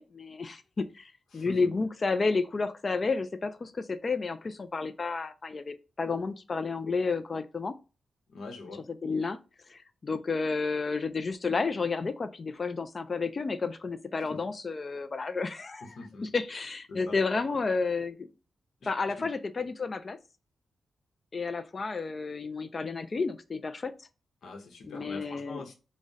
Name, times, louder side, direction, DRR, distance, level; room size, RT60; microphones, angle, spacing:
voice 1, 0.0-7.7 8.9-9.4 9.7-18.3 18.8-20.2 21.3-23.9 24.8-25.6, left 4 dB, 35° left, 0.3 m, -31 dB
voice 2, 1.3-1.7 8.3-8.8 14.3-14.4 15.8-16.2 16.9-17.2 18.8-18.9 19.2-19.3 24.4-25.7, left 3 dB, 75° left, 0.8 m, -43 dB
3.6 x 2.1 x 3.8 m
wide cardioid pair, 125°, 0 cm